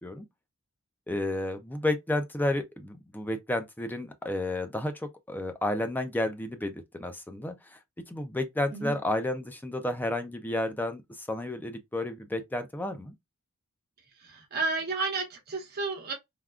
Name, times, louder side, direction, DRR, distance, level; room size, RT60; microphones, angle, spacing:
voice 1, 1.1-7.8 8.1-13.1, left 1 dB, 10° left, 0.4 m, -31 dB
voice 2, 14.2-16.1, right 3 dB, 50° right, 0.9 m, -32 dB
3.5 x 2.2 x 2.3 m
head